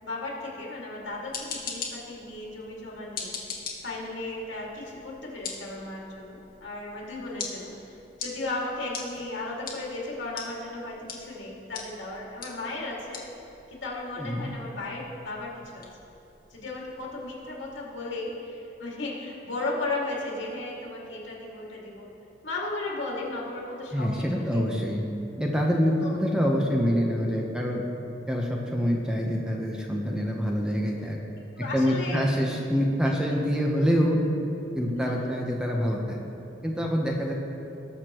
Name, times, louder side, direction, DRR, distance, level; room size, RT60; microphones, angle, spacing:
voice 1, 0.0-13.2 13.7-15.9 16.5-22.1 22.4-24.7 26.0-26.1 31.6-32.2 33.3-33.4 34.9-35.4, left 2 dB, 90° left, -3 dB, 2.3 m, -35 dB
sound 1, 1.0-17.8, left 5 dB, 50° left, 1.4 m, -43 dB
voice 2, 14.2-14.5 23.9-25.0 25.4-27.8 28.3-31.2 31.7-34.2 34.7-36.2 36.6-37.3, equal, 5° right, -1 dB, 0.9 m, -26 dB
19.5 x 6.6 x 3.0 m, 2.9 s
head